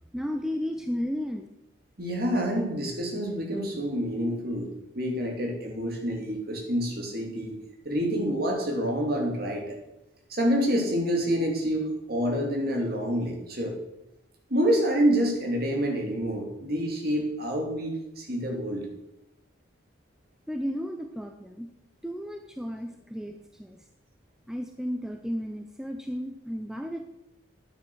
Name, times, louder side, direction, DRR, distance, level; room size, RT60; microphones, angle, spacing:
voice 1, 0.1-1.5 20.5-21.7 22.0-23.8 24.5-27.0, equal, 5° right, 5 dB, 0.6 m, -33 dB
voice 2, 2.0-4.7 4.9-7.5 7.8-9.8 10.3-13.8 14.5-18.9, equal, 50° right, 1 dB, 2.8 m, -27 dB
10.5 x 9.0 x 6.4 m, 0.89 s
head